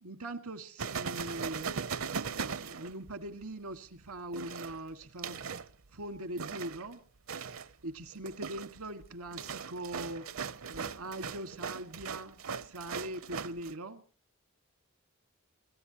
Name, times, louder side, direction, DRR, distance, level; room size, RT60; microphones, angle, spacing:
voice 1, 0.0-1.7 2.3-5.4 5.9-7.0 7.8-10.3 10.7-12.4 12.6-14.0, right 1 dB, 90° right, 1.9 m, -41 dB
sound 1, 0.8-3.4 4.3-5.7 6.4-6.9 7.3-7.7 8.1-13.7, right 6 dB, 65° right, 0.7 m, -39 dB
26.0 x 15.0 x 2.9 m
head